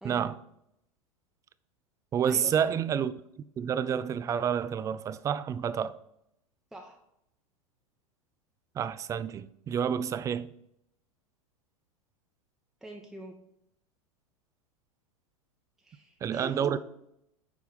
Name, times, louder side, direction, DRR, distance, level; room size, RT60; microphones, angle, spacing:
voice 1, 0.0-0.3 2.1-3.1 3.6-5.9 8.8-10.5 16.2-16.8, right 8 dB, 20° right, 0.3 m, -29 dB
voice 2, 2.2-2.7 6.7-7.0 12.8-13.4 15.8-16.8, right 1 dB, ahead, 0.9 m, -44 dB
9.5 x 3.5 x 5.8 m
figure-of-eight pair, 90°, 18 cm